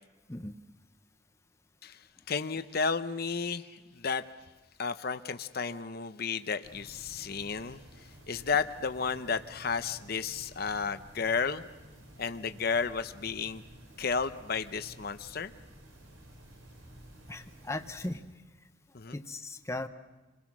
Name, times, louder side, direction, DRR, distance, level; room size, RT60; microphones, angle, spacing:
voice 1, 2.3-4.2 4.8-11.6 12.2-13.6 14.0-15.5 18.9-19.2, left 5 dB, 50° left, 10 dB, 0.7 m, -32 dB
sound 1, 6.6-18.2, right 1 dB, 80° right, 4.8 m, -53 dB
voice 2, 17.3-18.2 19.1-19.9, left 2 dB, 15° left, 8 dB, 0.8 m, -37 dB
28.0 x 20.5 x 6.1 m, 1.1 s
head